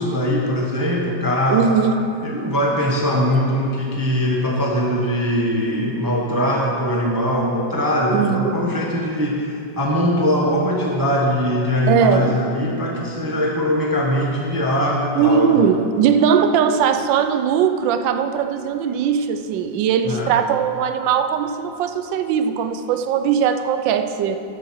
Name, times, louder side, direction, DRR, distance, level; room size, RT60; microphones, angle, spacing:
voice 1, 0.0-1.7 2.2-15.6 20.0-20.3, equal, 20° right, -2 dB, 0.6 m, -21 dB
voice 2, 1.5-2.1 8.1-8.5 11.9-12.4 15.2-24.4, right 7 dB, 75° right, 8 dB, 1.3 m, -19 dB
9.9 x 7.7 x 6.2 m, 2.6 s
omnidirectional pair, 2.1 m